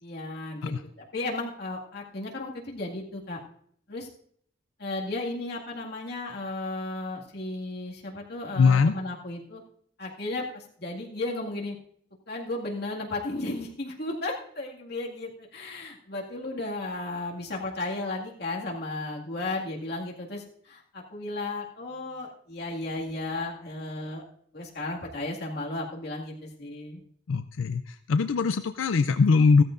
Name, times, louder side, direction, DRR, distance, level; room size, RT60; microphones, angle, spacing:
voice 1, 0.0-3.4 3.9-4.1 4.8-9.6 10.0-11.7 12.3-24.2 24.5-27.0, left 2 dB, 55° left, -2 dB, 2.1 m, -34 dB
voice 2, 8.6-8.9 27.3-29.6, left 4 dB, 90° left, 10 dB, 0.4 m, -21 dB
15.0 x 13.5 x 2.6 m, 0.63 s
head